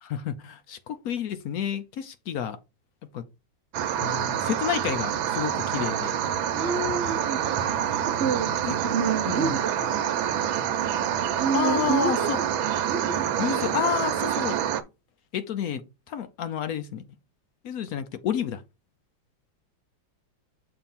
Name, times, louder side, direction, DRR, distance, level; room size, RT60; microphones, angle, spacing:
voice 1, 0.0-2.6 3.1-3.2 4.0-6.2 8.7-8.8 9.3-9.6 11.5-12.4 13.4-14.6 15.3-17.0 17.6-18.6, left 8 dB, 70° left, 0.9 m, -30 dB
sound 1, 3.7-14.8, right 9 dB, 90° right, 1.5 m, -27 dB
voice 2, 6.5-7.4 8.2-8.5 8.8-10.0 11.4-12.5 12.9-14.2, right 6 dB, 60° right, 0.7 m, -29 dB
6.8 x 2.9 x 5.6 m
omnidirectional pair, 2.1 m